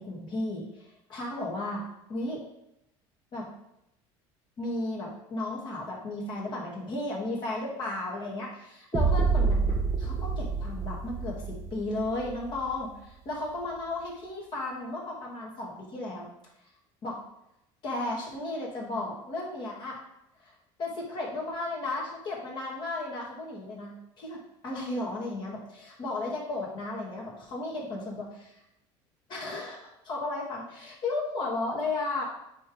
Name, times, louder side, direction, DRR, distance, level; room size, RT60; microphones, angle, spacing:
voice 1, 0.0-1.8 2.1-2.4 3.3-3.5 4.6-16.3 17.0-17.2 17.8-20.0 20.4-28.5 29.3-32.3, left 2 dB, 40° left, -3 dB, 2.3 m, -34 dB
sound 1, 8.9-12.9, right 4 dB, 25° right, 1.1 m, -28 dB
9.2 x 3.5 x 3.9 m, 0.84 s
cardioid pair, 130°, 11 cm